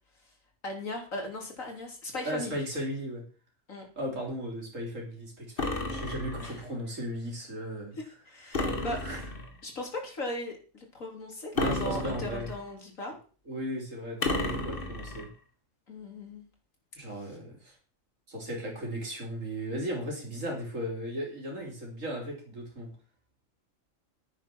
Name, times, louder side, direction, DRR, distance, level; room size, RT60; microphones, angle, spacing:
voice 1, 0.6-2.6 3.7-3.9 6.4-6.6 8.0-9.1 9.6-13.2 15.9-16.5, left 1 dB, 85° left, 1 dB, 3.7 m, -38 dB
voice 2, 2.2-3.2 4.0-8.0 8.5-8.6 9.0-9.2 11.5-12.5 13.5-15.3 17.0-17.7 18.3-22.9, equal, 75° right, -1 dB, 4.1 m, -36 dB
sound 1, 5.6-6.6 8.5-9.6 11.6-12.7 14.2-15.3, left 2 dB, 45° left, 2.0 m, -32 dB
10.0 x 8.9 x 6.2 m, 0.38 s
omnidirectional pair, 1.3 m